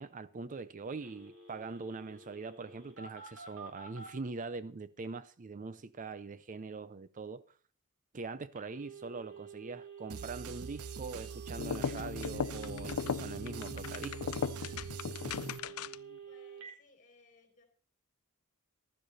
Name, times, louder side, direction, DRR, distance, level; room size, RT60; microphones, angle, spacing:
voice 1, 0.0-7.4 8.1-14.4, right 4 dB, 35° right, 0.5 m, -42 dB
Telephone, 1.0-4.1 8.5-16.7, right 6 dB, 70° right, 4.0 m, -49 dB
sound 1, 10.1-15.6, right 5 dB, 90° right, 0.8 m, -44 dB
sound 2, 11.5-16.2, left 6 dB, 75° left, 0.5 m, -37 dB
voice 2, 16.3-17.6, left 3 dB, 35° left, 3.8 m, -63 dB
15.0 x 12.0 x 4.1 m
head